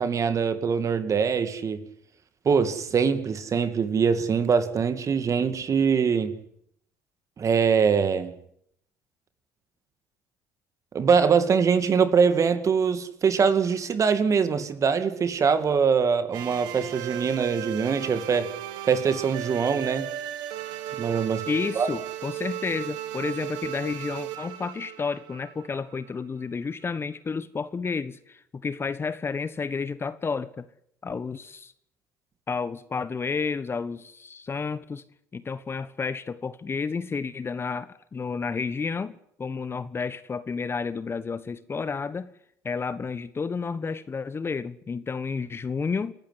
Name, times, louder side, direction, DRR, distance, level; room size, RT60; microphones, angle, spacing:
voice 1, 0.0-1.8 2.5-6.3 7.4-8.3 10.9-18.5 18.8-20.1 21.0-21.5 21.8-21.9, right 6 dB, 40° right, 11 dB, 2.3 m, -23 dB
sound 1, 16.3-26.2, right 11 dB, 65° right, 1.7 m, -36 dB
voice 2, 21.5-30.7 31.0-31.7 32.5-35.0 35.3-42.3 42.6-46.1, left 5 dB, 30° left, 15 dB, 1.3 m, -31 dB
28.5 x 12.0 x 9.8 m, 0.72 s
hypercardioid pair, 60°, 8 cm